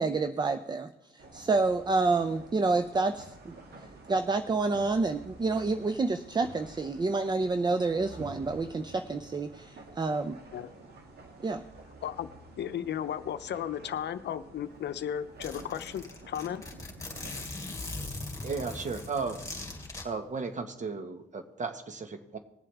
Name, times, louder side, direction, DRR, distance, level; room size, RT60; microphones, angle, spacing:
voice 1, 0.0-3.5 4.1-10.4 11.4-11.6, right 3 dB, 20° right, 10 dB, 0.6 m, -28 dB
sound 1, 1.2-17.4, right 2 dB, 55° right, 2.5 m, -50 dB
voice 2, 12.6-16.7, left 9 dB, 60° left, 12 dB, 0.7 m, -35 dB
Zipper (clothing), 14.6-14.7 15.0-15.1 15.4-20.0, left 2 dB, 15° left, 2.9 m, -40 dB
voice 3, 18.4-19.4 20.0-22.4, right 4 dB, 40° right, 7 dB, 1.5 m, -35 dB
20.0 x 7.5 x 3.5 m, 0.89 s
cardioid pair, 90°, 20 cm